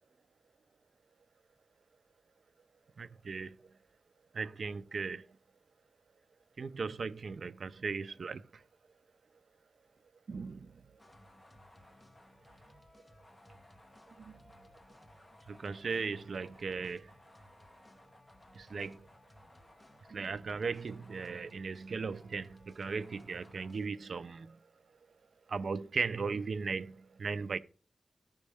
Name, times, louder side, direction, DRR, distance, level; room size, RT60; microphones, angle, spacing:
voice 1, 3.0-3.5 4.3-5.2 6.6-8.4 10.3-10.7 14.2-14.3 15.5-17.0 18.6-19.0 20.1-24.5 25.5-27.6, right 4 dB, 60° right, 0.5 m, -37 dB
sound 1, 11.0-23.9, left 1 dB, 20° left, 1.0 m, -59 dB
14.5 x 5.3 x 3.4 m
wide cardioid pair, 140°, 0 cm